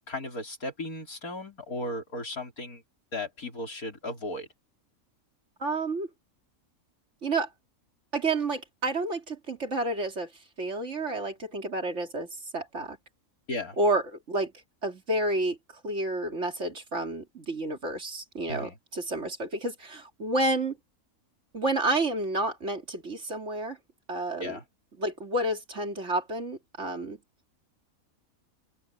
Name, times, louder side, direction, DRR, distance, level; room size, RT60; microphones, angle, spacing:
voice 1, 0.1-2.8 3.1-4.5 13.5-13.8 18.5-18.8 24.4-24.6, left 1 dB, 85° left, 4.8 m, -35 dB
voice 2, 5.6-6.1 7.2-7.5 8.1-10.3 10.6-13.0 13.8-14.5 14.8-15.6 15.8-20.8 21.5-23.8 24.1-24.6 25.0-27.2, right 2 dB, 55° right, 3.0 m, -30 dB
open air
omnidirectional pair, 1.5 m